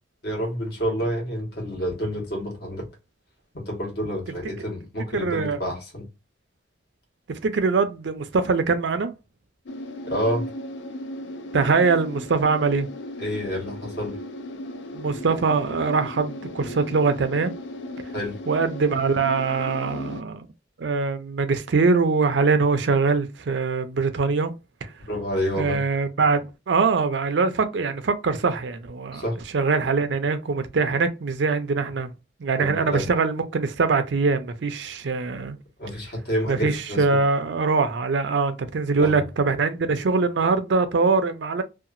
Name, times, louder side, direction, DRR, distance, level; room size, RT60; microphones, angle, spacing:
voice 1, 0.2-2.9 3.5-6.1 10.1-10.5 13.2-14.2 18.1-18.4 25.1-25.8 29.1-29.4 32.6-33.1 35.8-37.2 39.0-39.2, equal, 55° left, 1.3 m, -28 dB
voice 2, 5.1-5.6 7.3-9.1 11.5-12.9 14.9-17.6 18.5-20.5 20.8-24.5 24.8-24.9 25.6-29.2 29.5-32.1 32.4-35.6 36.5-41.6, right 4 dB, 70° right, 0.5 m, -23 dB
sound 1, 9.7-20.2, left 1 dB, 70° left, 0.4 m, -36 dB
2.8 x 2.3 x 2.5 m
head